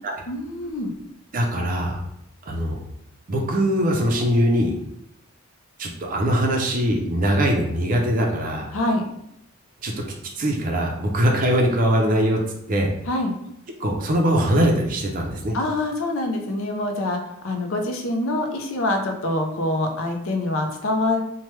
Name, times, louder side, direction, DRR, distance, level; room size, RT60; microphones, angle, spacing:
voice 1, 0.3-0.9 8.7-9.0 13.1-13.4 15.5-21.2, left 2 dB, 65° left, 4 dB, 0.5 m, -25 dB
voice 2, 1.3-2.0 2.5-2.8 3.3-4.7 5.8-8.7 9.8-9.9 10.4-12.4 12.7-12.9 13.8-15.6, equal, 40° right, 1 dB, 0.5 m, -21 dB
3.2 x 2.2 x 3.0 m, 0.78 s
head